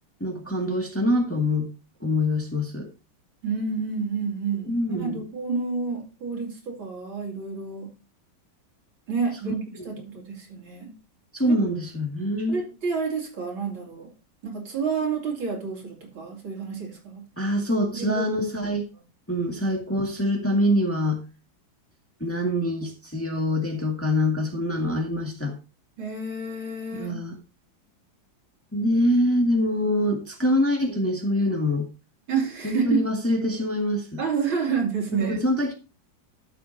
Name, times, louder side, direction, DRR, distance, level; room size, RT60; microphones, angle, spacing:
voice 1, 0.2-1.7 2.0-2.9 4.7-5.2 9.4-9.9 11.3-12.6 17.4-18.9 19.3-21.2 22.2-25.5 26.9-27.3 28.7-31.9 32.6-34.2 35.3-35.7, left 1 dB, 5° left, 1 dB, 1.6 m, -25 dB
voice 2, 3.4-7.9 9.1-10.9 11.4-11.6 12.5-14.1 14.4-17.3 17.9-18.3 18.6-18.7 26.0-27.2 32.3-33.0 34.2-35.4, right 5 dB, 80° right, 0 dB, 3.4 m, -29 dB
12.5 x 7.8 x 2.7 m, 0.30 s
omnidirectional pair, 2.2 m